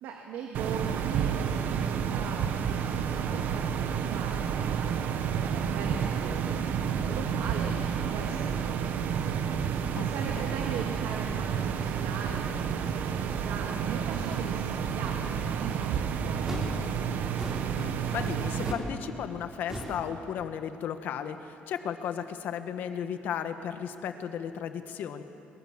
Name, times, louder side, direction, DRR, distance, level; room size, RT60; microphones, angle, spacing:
voice 1, 0.0-7.8 8.1-16.8, right 6 dB, 90° right, 1 dB, 2.1 m, -41 dB
sound 1, 0.5-18.7, right 7 dB, 55° right, 1.3 m, -30 dB
sound 2, 16.4-16.8 17.4-17.7 18.6-18.9 19.2-19.4 19.7-20.0, equal, 10° right, 4.0 m, -36 dB
Guitar, 17.8-21.0, left 4 dB, 75° left, 2.1 m, -50 dB
voice 2, 17.8-25.2, left 8 dB, 60° left, 8 dB, 1.4 m, -35 dB
23.5 x 22.5 x 7.4 m, 2.8 s
cardioid pair, 165°, 4 cm